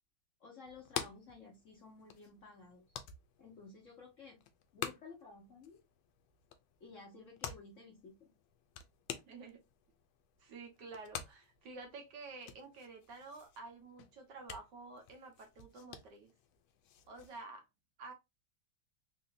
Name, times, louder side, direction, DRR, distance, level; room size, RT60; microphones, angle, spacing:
voice 1, 0.4-2.8 3.4-4.4 4.7-5.8 6.8-8.3, left 4 dB, 50° left, 1.1 m, -54 dB
sound 1, 0.7-17.4, left 9 dB, 85° left, 1.4 m, -49 dB
voice 2, 9.3-9.6 10.4-16.3 17.1-17.7 18.0-18.1, right 3 dB, 65° right, 1.5 m, -50 dB
3.8 x 2.7 x 2.5 m
omnidirectional pair, 2.2 m